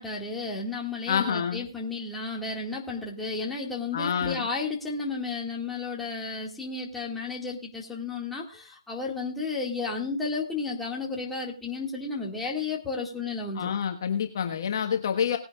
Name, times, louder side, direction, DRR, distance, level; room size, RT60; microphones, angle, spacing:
voice 1, 0.0-13.7, left 4 dB, 5° left, -3 dB, 2.0 m, -33 dB
voice 2, 1.1-1.6 3.9-4.5 13.5-15.4, left 7 dB, 45° left, 4 dB, 1.4 m, -27 dB
19.5 x 10.5 x 2.4 m, 0.29 s
hypercardioid pair, 155°, 3 cm